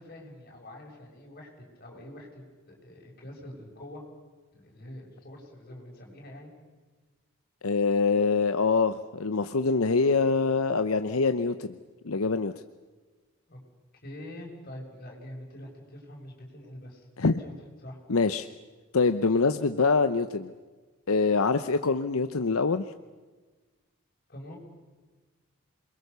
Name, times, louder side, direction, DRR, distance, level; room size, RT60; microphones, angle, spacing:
voice 1, 0.0-4.0 4.5-6.5 13.5-13.6 14.0-17.1 17.4-17.5 17.8-18.0 24.3-24.6, left 1 dB, 45° left, -1 dB, 6.8 m, -45 dB
voice 2, 7.6-11.8 12.0-12.5 17.2-17.4 18.1-18.5 18.9-20.5 21.1-22.9, left 4 dB, 80° left, 10 dB, 0.8 m, -24 dB
28.0 x 22.0 x 6.9 m, 1.3 s
head